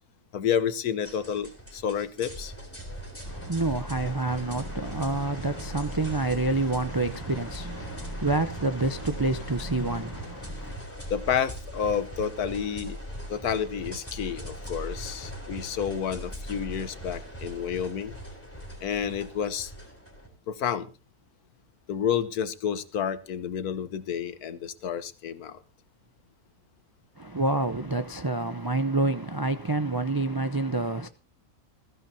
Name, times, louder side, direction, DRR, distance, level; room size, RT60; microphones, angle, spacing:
voice 1, 0.3-2.5 11.1-13.0 13.3-18.2 18.8-19.7 20.5-20.9 21.9-25.6, left 8 dB, 75° left, 1.4 m, -30 dB
sound 1, 1.0-20.3, equal, 10° left, 3.7 m, -39 dB
voice 2, 3.2-10.8 27.2-31.1, right 2 dB, 35° right, 0.3 m, -28 dB
20.5 x 14.5 x 2.8 m
omnidirectional pair, 1.6 m